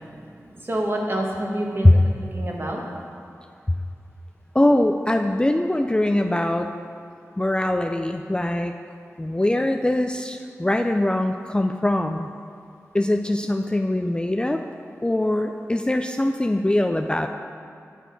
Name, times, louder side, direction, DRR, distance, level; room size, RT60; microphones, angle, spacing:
voice 1, 0.0-2.8, right 1 dB, 40° right, -1 dB, 1.3 m, -28 dB
voice 2, 4.5-6.7 7.4-8.7 9.2-12.3 12.9-14.6 15.0-17.3, left 1 dB, 15° left, 5 dB, 0.3 m, -22 dB
8.1 x 6.7 x 4.6 m, 2.3 s
wide cardioid pair, 60°, 6 cm